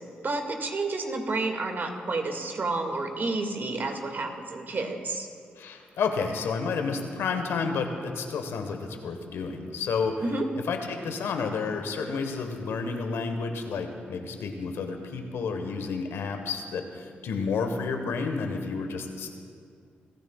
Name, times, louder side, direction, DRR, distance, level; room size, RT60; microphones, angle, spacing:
voice 1, 0.2-5.3 10.2-10.4, right 3 dB, 50° right, 3 dB, 2.1 m, -30 dB
voice 2, 5.6-10.1 10.7-19.3, left 5 dB, 75° left, 5 dB, 1.3 m, -30 dB
21.5 x 14.0 x 2.4 m, 2.3 s
hypercardioid pair, 40°, 4 cm